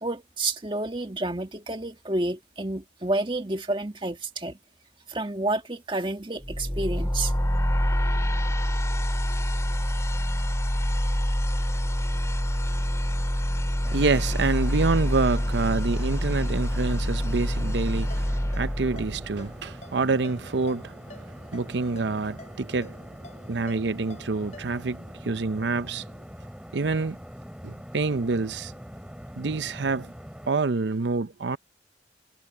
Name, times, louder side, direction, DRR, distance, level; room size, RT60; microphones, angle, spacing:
voice 1, 0.0-4.6 5.1-7.3, right 2 dB, 25° right, 1.7 m, -30 dB
sound 1, 6.4-19.5, equal, 15° left, 2.3 m, -26 dB
sound 2, 13.8-30.5, equal, 5° right, 7.1 m, -43 dB
voice 2, 13.9-21.0 21.5-23.1 23.5-26.0 26.7-27.2 27.6-28.7 29.4-30.1 30.5-31.6, right 3 dB, 80° right, 0.7 m, -27 dB
Ringtone, 18.1-25.0, left 2 dB, 40° left, 6.2 m, -50 dB
head